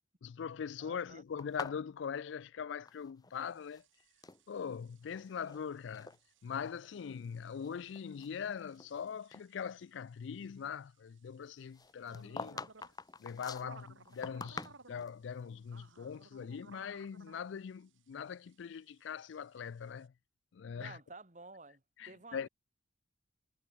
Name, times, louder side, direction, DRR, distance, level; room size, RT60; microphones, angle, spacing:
voice 1, 0.2-3.8 4.5-6.1 6.4-12.6 13.2-20.1 20.5-21.0 22.0-22.5, left 7 dB, 70° left, 0.4 m, -42 dB
voice 2, 0.8-1.2 20.7-22.5, right 3 dB, 35° right, 2.3 m, -52 dB
sound 1, 1.4-3.4 3.6-4.4 5.0-5.6 5.9-6.2 6.8-6.9 7.5-9.0 9.3-9.4 11.7-15.2, left 4 dB, 20° left, 0.5 m, -46 dB
sound 2, 3.4-20.1, right 4 dB, 80° right, 2.0 m, -62 dB
head